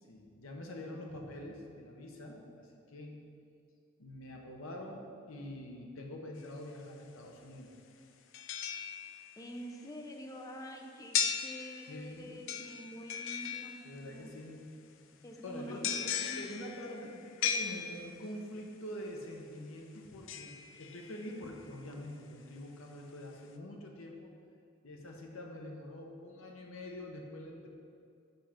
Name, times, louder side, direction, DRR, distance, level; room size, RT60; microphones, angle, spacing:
voice 1, 0.1-3.3 4.0-7.7 11.8-12.3 13.8-24.3 24.8-27.7, left 1 dB, 80° left, 1 dB, 1.0 m, -45 dB
sound 1, 6.4-6.5 8.3-9.5 11.1-12.1 12.5-14.2 15.8-18.4 20.3-21.5 21.9-22.0, left 7 dB, 65° left, 0.4 m, -37 dB
voice 2, 9.4-14.3 15.2-17.2, equal, 15° left, 2 dB, 0.6 m, -47 dB
5.6 x 5.2 x 5.8 m, 2.5 s
head